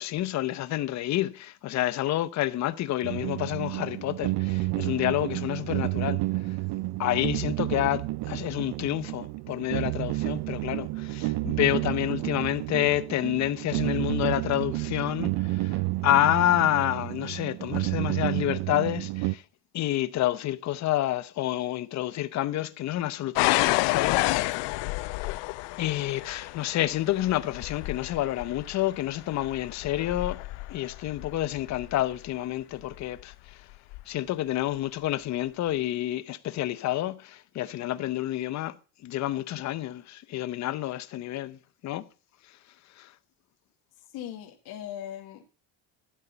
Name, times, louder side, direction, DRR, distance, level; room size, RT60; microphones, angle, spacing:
voice 1, 0.0-6.2 7.0-19.4 19.7-25.3 25.8-30.4 30.7-33.6 34.1-38.7 39.0-41.6 41.8-42.1 43.0-43.1, left 14 dB, 40° left, 0.8 m, -29 dB
sound 1, 3.0-19.4, right 20 dB, 60° right, 0.5 m, -30 dB
sound 2, 23.4-32.2 32.9-33.3 33.9-34.0, left 22 dB, 75° left, 0.6 m, -30 dB
voice 2, 44.0-45.4, left 11 dB, 60° left, 1.8 m, -39 dB
13.0 x 8.0 x 5.6 m
cardioid pair, 180°, 43 cm